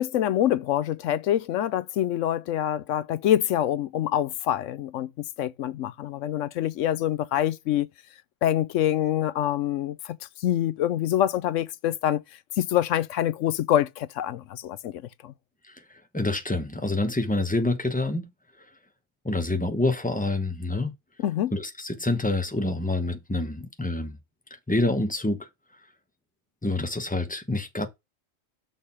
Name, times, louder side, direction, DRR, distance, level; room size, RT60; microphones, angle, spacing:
voice 1, 0.0-5.1 5.4-7.9 8.4-12.2 12.6-14.9 15.2-15.3 21.2-21.5, left 11 dB, 70° left, 0.9 m, -25 dB
voice 2, 15.7-18.3 19.2-20.9 21.5-24.2 24.7-25.5 26.6-27.9, left 2 dB, 5° left, 1.0 m, -27 dB
6.5 x 3.8 x 5.5 m
omnidirectional pair, 1.4 m